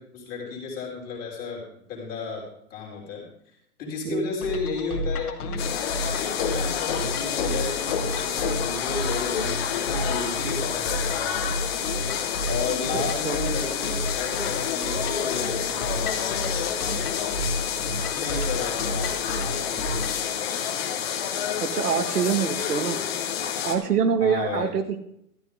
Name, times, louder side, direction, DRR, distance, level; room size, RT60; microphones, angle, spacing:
voice 1, 0.0-1.6 1.9-2.4 2.7-3.2 3.8-11.6 12.4-20.3 24.2-24.7, left 4 dB, 20° left, -1 dB, 3.2 m, -34 dB
sound 1, 4.4-20.3, left 1 dB, 70° left, 1.9 m, -32 dB
sound 2, 5.6-23.8, left 8 dB, 40° left, 1.5 m, -29 dB
voice 2, 12.9-13.4 21.6-23.0 23.6-25.0, right 7 dB, 70° right, 7 dB, 1.6 m, -25 dB
13.0 x 12.0 x 3.7 m, 0.72 s
hypercardioid pair, 160°, 47 cm